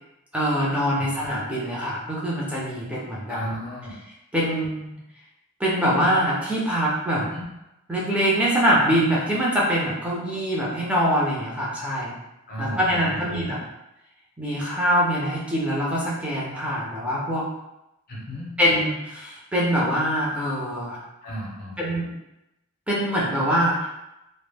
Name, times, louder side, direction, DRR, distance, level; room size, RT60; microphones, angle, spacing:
voice 1, 0.3-3.4 4.3-4.9 5.6-7.2 7.9-12.1 12.6-13.6 14.4-17.4 18.6-21.0 21.8-22.1 22.9-23.9, equal, 5° right, -6 dB, 0.5 m, -24 dB
voice 2, 3.3-4.0 7.1-7.4 12.5-13.5 18.1-18.5 21.2-21.8, equal, 40° left, -4 dB, 0.6 m, -34 dB
2.1 x 2.0 x 3.3 m, 0.91 s
head